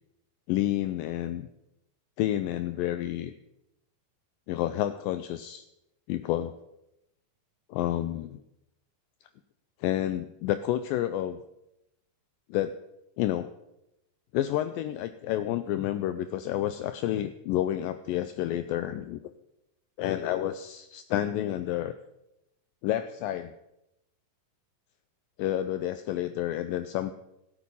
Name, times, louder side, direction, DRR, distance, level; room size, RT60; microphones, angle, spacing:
voice 1, 0.5-1.5 2.2-3.3 4.5-5.6 6.1-6.5 7.7-8.4 9.8-11.4 12.5-12.7 13.2-13.5 14.3-19.2 20.0-21.9 22.8-23.6 25.4-27.1, left 12 dB, 80° left, 11 dB, 2.2 m, -29 dB
15.5 x 8.7 x 5.4 m, 0.87 s
omnidirectional pair, 4.2 m